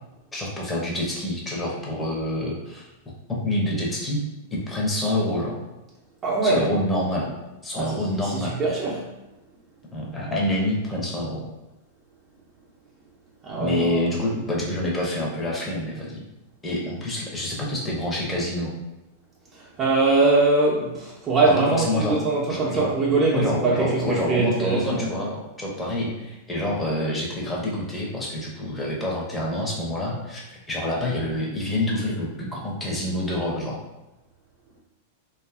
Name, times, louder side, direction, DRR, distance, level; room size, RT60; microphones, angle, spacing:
voice 1, 0.3-2.9 3.3-4.2 4.5-5.6 6.4-7.3 7.6-8.6 9.9-11.4 13.6-16.2 16.6-18.7 21.5-22.2 22.5-22.9 23.3-33.8, left 1 dB, 15° left, -4 dB, 0.7 m, -27 dB
voice 2, 6.2-6.7 7.7-9.1 13.4-14.0 19.5-25.1, right 3 dB, 30° right, -5 dB, 0.5 m, -22 dB
2.6 x 2.4 x 2.3 m, 1.0 s
hypercardioid pair, 105°, 0 cm